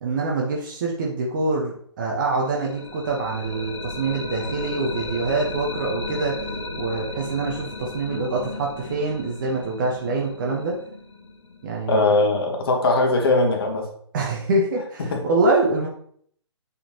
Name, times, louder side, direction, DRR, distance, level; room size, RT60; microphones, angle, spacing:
voice 1, 0.0-6.4 6.8-10.8 11.6-12.0 14.1-15.9, right 3 dB, 45° right, -2 dB, 1.1 m, -25 dB
sound 1, 2.4-12.2, left 2 dB, 85° left, 1.7 m, -34 dB
voice 2, 11.9-13.9 15.1-15.2, left 2 dB, 55° left, 2 dB, 1.5 m, -20 dB
8.2 x 4.2 x 2.9 m, 0.64 s
figure-of-eight pair, 140°, 15 cm